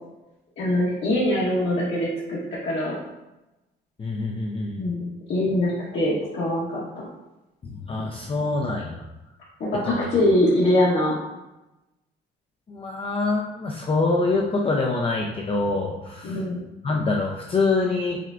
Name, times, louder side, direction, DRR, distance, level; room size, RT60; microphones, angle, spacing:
voice 1, 0.6-3.0 4.8-6.8 9.6-11.2 16.2-16.6, left 1 dB, 65° left, -8 dB, 1.1 m, -23 dB
voice 2, 4.0-4.8 7.6-9.1 9.9-10.1 12.7-16.4 16.8-18.2, left 3 dB, 30° left, -1 dB, 0.4 m, -25 dB
5.9 x 2.1 x 2.4 m, 0.99 s
cardioid pair, 90°, 20 cm